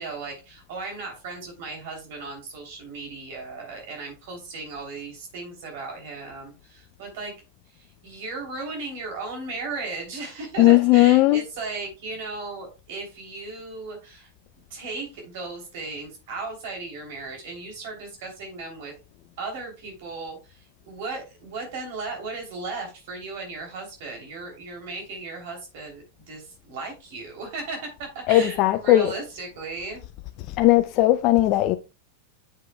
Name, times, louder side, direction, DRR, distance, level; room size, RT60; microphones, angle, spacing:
voice 1, 0.0-7.3 7.7-14.3 14.7-18.9 19.4-30.1, right 3 dB, 65° right, 3.2 m, -36 dB
voice 2, 10.6-11.4 28.3-29.1 30.6-31.8, left 16 dB, 45° left, 0.5 m, -17 dB
8.0 x 7.3 x 2.3 m
hypercardioid pair, 120°, 0 cm